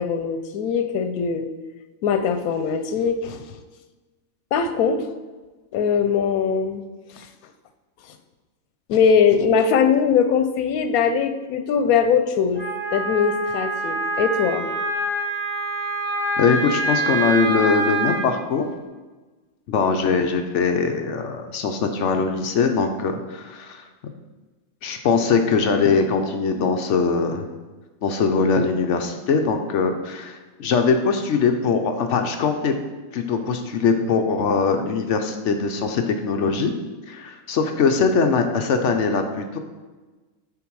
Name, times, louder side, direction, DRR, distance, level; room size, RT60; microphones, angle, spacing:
voice 1, 0.0-1.5 2.0-3.4 4.5-5.1 5.7-6.8 7.2-7.3 8.9-12.6 12.9-14.7, left 6 dB, 85° left, 8 dB, 1.1 m, -21 dB
Wind instrument woodwind instrument, 12.6-18.3, right 2 dB, 20° right, 1.2 m, -25 dB
voice 2, 16.4-18.7 19.7-23.8 24.8-27.5 28.0-32.7 33.1-36.7 37.1-39.6, left 5 dB, 65° left, 5 dB, 0.9 m, -21 dB
7.4 x 3.8 x 4.6 m, 1.2 s
omnidirectional pair, 1.5 m